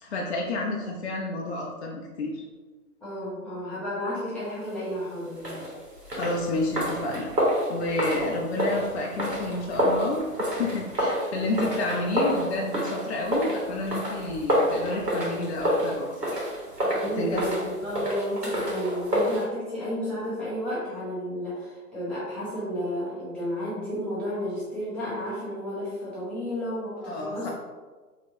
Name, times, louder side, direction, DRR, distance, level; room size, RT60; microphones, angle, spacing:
voice 1, 0.0-2.4 6.1-7.3 7.7-16.4 17.2-17.4 27.0-27.5, left 2 dB, 45° left, -1 dB, 0.5 m, -30 dB
voice 2, 3.0-5.7 16.8-27.5, equal, ahead, -11 dB, 0.8 m, -32 dB
sound 1, 5.4-19.4, equal, 85° right, 1.4 m, -28 dB
4.3 x 3.0 x 2.6 m, 1.4 s
figure-of-eight pair, 120°, 47 cm